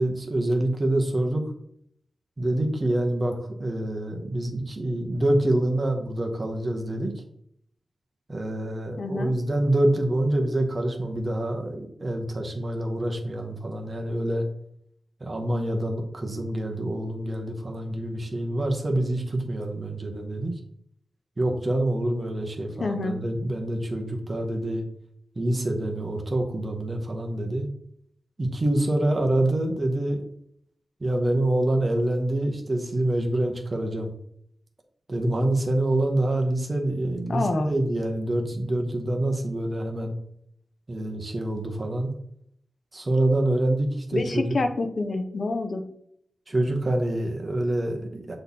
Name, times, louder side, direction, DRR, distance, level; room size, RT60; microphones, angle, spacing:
voice 1, 0.0-1.4 2.4-7.1 8.3-14.5 15.2-20.6 21.4-24.8 25.3-27.7 28.4-30.2 31.0-34.1 35.1-40.1 40.9-42.1 42.9-44.6 46.5-48.4, right 1 dB, 30° right, 2 dB, 1.0 m, -26 dB
voice 2, 9.0-9.3 22.8-23.2 37.3-37.7 44.1-45.9, left 3 dB, 50° left, 7 dB, 0.7 m, -27 dB
7.0 x 3.3 x 4.1 m, 0.69 s
wide cardioid pair, 150°, 0 cm